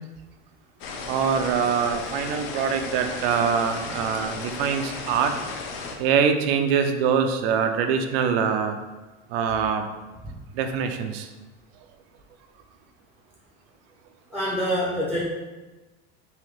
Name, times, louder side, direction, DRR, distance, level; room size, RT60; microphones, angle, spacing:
sound 1, 0.8-6.0, left 4 dB, 65° left, 0.7 m, -35 dB
voice 1, 1.1-5.3 6.0-8.8 9.3-9.8 10.5-11.3, right 7 dB, 75° right, 6 dB, 0.5 m, -24 dB
voice 2, 14.3-15.2, equal, 5° left, -5 dB, 0.7 m, -26 dB
3.8 x 2.8 x 3.2 m, 1.2 s
supercardioid pair, 110°, 30 cm